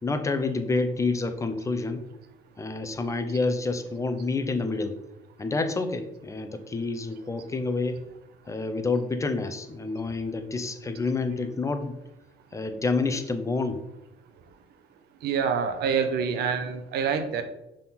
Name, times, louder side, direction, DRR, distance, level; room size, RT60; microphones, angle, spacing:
voice 1, 0.0-2.0 2.6-5.0 5.4-8.0 8.5-12.0 12.5-13.8, left 3 dB, 20° left, 9 dB, 0.7 m, -28 dB
voice 2, 15.2-17.4, right 6 dB, 70° right, 8 dB, 0.8 m, -26 dB
5.8 x 3.7 x 6.0 m, 0.91 s
cardioid pair, 110°, 17 cm